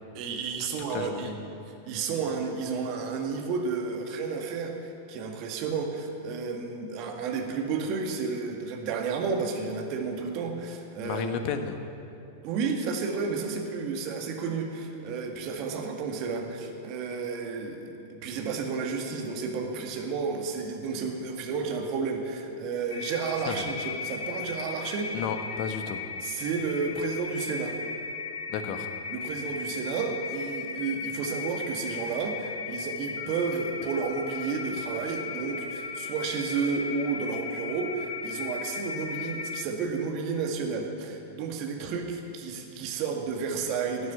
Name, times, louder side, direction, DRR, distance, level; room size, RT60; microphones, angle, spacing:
voice 1, 0.1-1.3 1.9-11.3 12.4-25.1 26.2-27.8 29.1-44.1, right 5 dB, 45° right, 2 dB, 2.0 m, -32 dB
voice 2, 0.9-1.4 11.0-11.7 23.5-23.7 25.1-26.1 28.5-28.9, left 7 dB, 45° left, 7 dB, 1.2 m, -33 dB
sound 1, 22.9-39.6, left 4 dB, 65° left, 1.3 m, -36 dB
12.5 x 9.5 x 9.6 m, 2.7 s
figure-of-eight pair, 95°, 0 cm